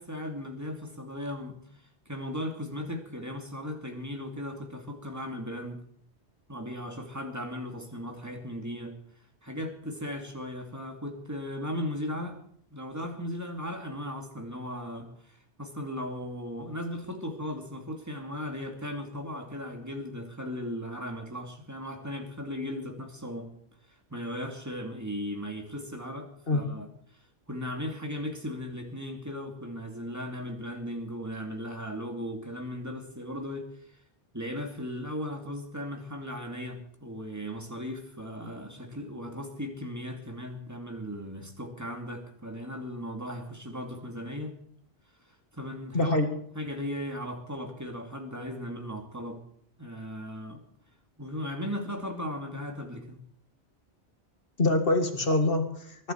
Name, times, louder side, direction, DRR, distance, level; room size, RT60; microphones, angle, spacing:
voice 1, 0.0-1.6 2.1-5.8 6.5-9.0 9.4-12.4 12.7-23.5 24.1-26.9 27.5-33.7 34.3-44.6 45.5-46.2 46.5-49.4 49.8-50.6 51.2-53.3, equal, 15° right, 3 dB, 2.5 m, -37 dB
voice 2, 45.9-46.3 54.6-56.1, left 2 dB, 55° left, 5 dB, 2.2 m, -25 dB
23.0 x 11.5 x 4.5 m, 0.64 s
omnidirectional pair, 1.1 m